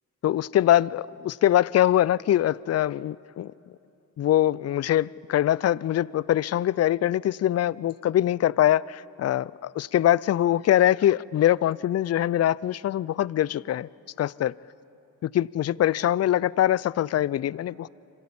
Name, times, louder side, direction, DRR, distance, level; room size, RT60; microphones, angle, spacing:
voice 1, 0.2-3.5 4.2-13.9 14.2-14.5 15.2-17.9, left 12 dB, 40° left, 0.4 m, -23 dB
25.5 x 15.0 x 8.5 m
supercardioid pair, 45°, 40 cm